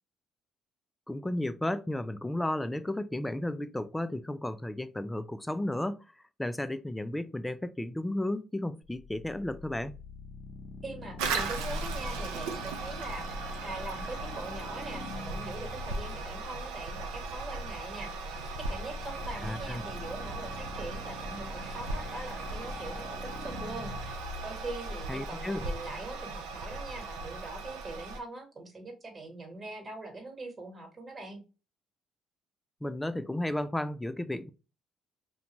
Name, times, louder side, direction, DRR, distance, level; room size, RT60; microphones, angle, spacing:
voice 1, 1.1-6.0 6.4-10.0 19.4-19.8 25.1-25.7 32.8-34.5, left 1 dB, 10° left, 0.3 m, -33 dB
sound 1, 8.9-26.0, left 5 dB, 55° left, 0.7 m, -46 dB
voice 2, 10.8-23.0 23.4-31.4, right 2 dB, 35° right, 1.2 m, -42 dB
Toilet flush, 11.2-28.2, right 3 dB, 85° right, 0.4 m, -37 dB
2.5 x 2.2 x 2.9 m
supercardioid pair, 70°, 0 cm